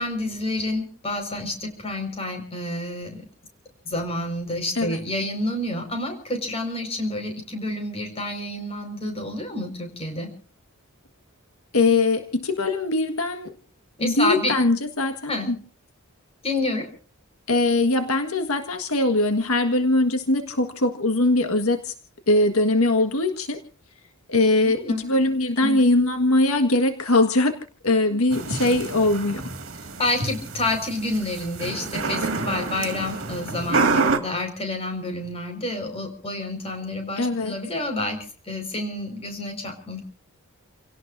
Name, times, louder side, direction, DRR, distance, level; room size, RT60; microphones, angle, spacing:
voice 1, 0.0-3.2 3.9-10.3 14.0-14.6 15.3-15.5 16.4-16.9 24.6-25.0 25.6-25.8 28.1-28.2 30.0-40.0, left 2 dB, 30° left, 5 dB, 5.2 m, -29 dB
voice 2, 11.7-13.5 14.0-15.5 17.5-21.9 22.3-23.6 24.3-27.6 27.8-29.4 37.2-37.5, left 2 dB, 80° left, 7 dB, 1.7 m, -21 dB
sound 1, 28.3-34.2, right 3 dB, 70° right, 2.1 m, -27 dB
29.5 x 17.5 x 2.7 m, 0.39 s
head